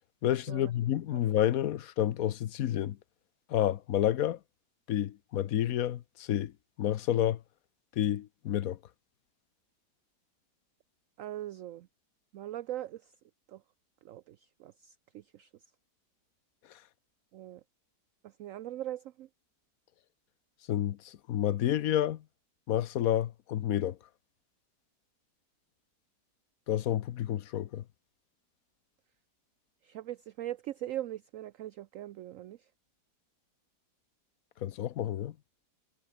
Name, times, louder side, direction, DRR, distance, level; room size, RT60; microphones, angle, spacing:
voice 1, 0.2-3.0 3.5-4.4 4.9-6.5 6.8-7.4 8.0-8.8 20.7-22.2 22.7-24.0 26.7-27.8 34.6-35.3, left 11 dB, 65° left, 1.1 m, -29 dB
voice 2, 11.2-11.9 12.3-13.1 13.5-13.6 14.0-15.5 17.3-17.6 18.2-19.3 29.8-32.7, right 13 dB, 65° right, 0.8 m, -41 dB
omnidirectional pair, 1.8 m